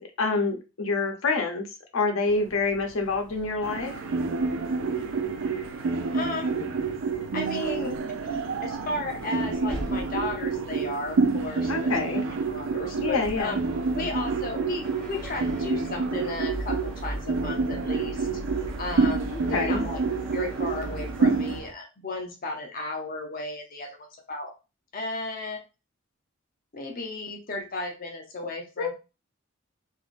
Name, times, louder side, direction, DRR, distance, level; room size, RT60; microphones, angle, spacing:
voice 1, 0.2-1.7 1.9-3.9 11.7-12.2 13.0-13.6 19.3-19.8 28.8-28.9, left 3 dB, 80° left, 4 dB, 0.7 m, -27 dB
sound 1, 2.2-21.7, right 1 dB, 5° left, 0.9 m, -41 dB
sound 2, 3.6-21.6, right 4 dB, 65° right, 0.4 m, -28 dB
voice 2, 6.1-6.7 7.3-13.6 13.9-18.3 18.8-20.0 20.3-24.0 24.3-24.5 24.9-25.6 26.7-28.9, left 2 dB, 45° left, 2 dB, 0.7 m, -34 dB
3.4 x 2.6 x 2.5 m, 0.29 s
head